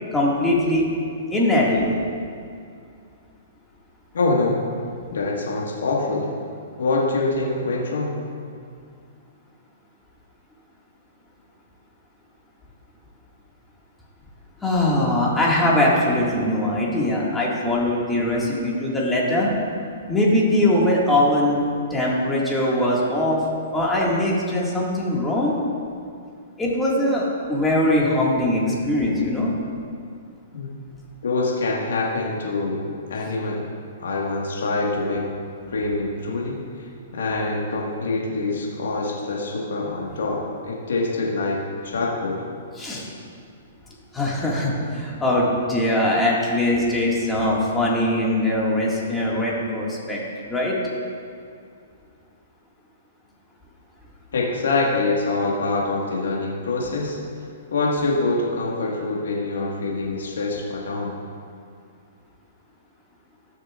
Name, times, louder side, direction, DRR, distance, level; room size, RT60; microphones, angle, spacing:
voice 1, 0.1-0.8 1.3-1.9 14.6-19.5 20.1-21.6 21.9-23.4 23.7-25.6 26.6-29.6 42.8-43.1 44.1-50.2 50.5-50.8, left 1 dB, 10° left, -5 dB, 1.9 m, -21 dB
voice 2, 4.1-4.6 5.1-6.3 6.8-8.2 30.5-30.7 31.2-33.6 34.0-35.3 35.7-36.6 37.1-42.4 54.3-57.2 57.7-61.1, left 3 dB, 80° left, -3 dB, 1.6 m, -25 dB
14.5 x 6.5 x 2.5 m, 2.3 s
hypercardioid pair, 135°, 0 cm